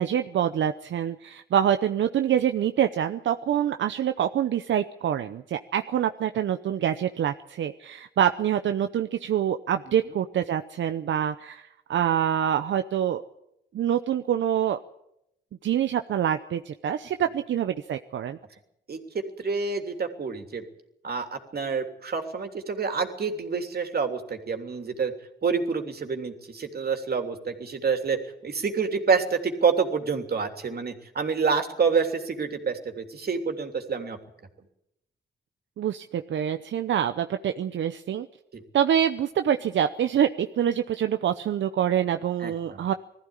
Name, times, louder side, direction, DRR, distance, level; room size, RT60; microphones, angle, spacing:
voice 1, 0.0-13.2 13.7-14.8 15.6-18.4 35.8-38.3 38.7-42.9, right 9 dB, 85° right, 8 dB, 0.8 m, -26 dB
voice 2, 19.4-20.6 21.0-25.1 25.4-28.2 28.4-34.2 38.5-38.6 42.4-42.8, right 5 dB, 55° right, 5 dB, 3.2 m, -27 dB
21.0 x 14.5 x 9.9 m, 0.82 s
cardioid pair, 80°, 19 cm